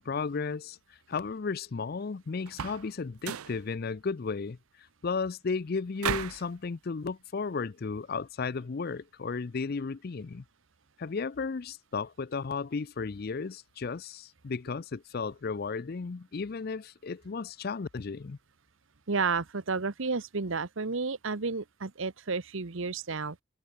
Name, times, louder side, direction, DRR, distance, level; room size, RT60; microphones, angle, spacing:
voice 1, 0.0-10.4 11.0-18.4, left 4 dB, 45° left, 0.5 m, -34 dB
sound 1, 2.5-2.9 3.2-3.6 6.0-6.5, right 8 dB, 90° right, 0.6 m, -34 dB
voice 2, 19.1-23.4, right 4 dB, 65° right, 1.0 m, -31 dB
head